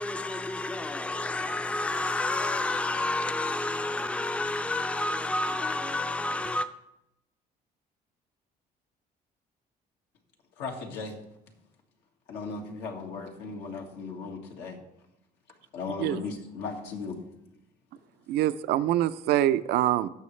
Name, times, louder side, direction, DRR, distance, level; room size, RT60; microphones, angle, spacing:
voice 1, 0.0-6.7, left 2 dB, 5° left, 0.5 m, -30 dB
voice 2, 10.6-11.2 12.3-14.8 15.7-17.2, left 4 dB, 85° left, 1.8 m, -36 dB
voice 3, 18.3-20.1, right 13 dB, 80° right, 0.5 m, -24 dB
16.5 x 6.3 x 3.2 m
cardioid pair, 110°, 17 cm